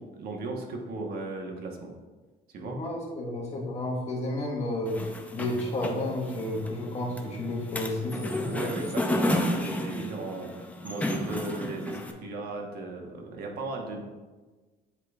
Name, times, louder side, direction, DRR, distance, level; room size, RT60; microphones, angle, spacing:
voice 1, 0.0-1.9 2.5-2.8 8.5-14.0, right 3 dB, 65° right, 1 dB, 1.2 m, -36 dB
voice 2, 2.6-5.0 5.3-8.5, left 1 dB, 40° left, -2 dB, 1.5 m, -31 dB
sound 1, 4.9-12.1, left 1 dB, 10° left, 0.6 m, -32 dB
9.4 x 4.8 x 2.4 m, 1.3 s
cardioid pair, 110°, 17 cm